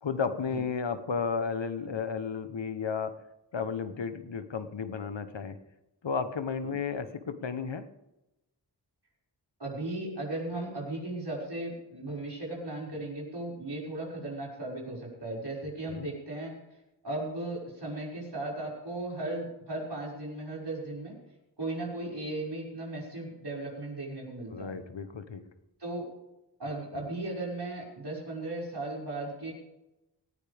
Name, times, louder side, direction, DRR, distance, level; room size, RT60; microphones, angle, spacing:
voice 1, 0.0-3.1 3.5-5.6 6.0-7.9 15.9-16.1 24.5-25.4 26.9-27.0, left 5 dB, 90° left, 10 dB, 1.1 m, -33 dB
voice 2, 9.6-16.5 17.0-21.1 21.6-24.7 25.8-26.0 26.6-29.5, right 2 dB, 65° right, -4 dB, 5.9 m, -36 dB
18.0 x 14.5 x 3.5 m, 0.94 s
wide cardioid pair, 40°, 43 cm